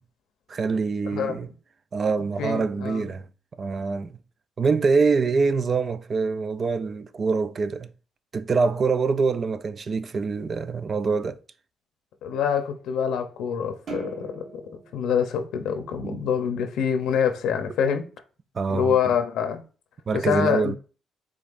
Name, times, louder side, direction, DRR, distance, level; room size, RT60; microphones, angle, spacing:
voice 1, 0.5-1.5 1.9-3.3 3.6-4.1 4.6-7.9 8.3-11.4 16.0-16.2 17.8-17.9 18.5-19.1 20.1-20.8, right 4 dB, 40° right, 0.4 m, -25 dB
voice 2, 2.4-3.0 12.2-14.6 14.9-18.1 18.7-19.6 20.2-20.7, left 7 dB, 85° left, 0.6 m, -25 dB
sound 1, 13.9-16.4, right 5 dB, 55° right, 1.3 m, -41 dB
5.1 x 3.7 x 2.5 m
cardioid pair, 100°, 0 cm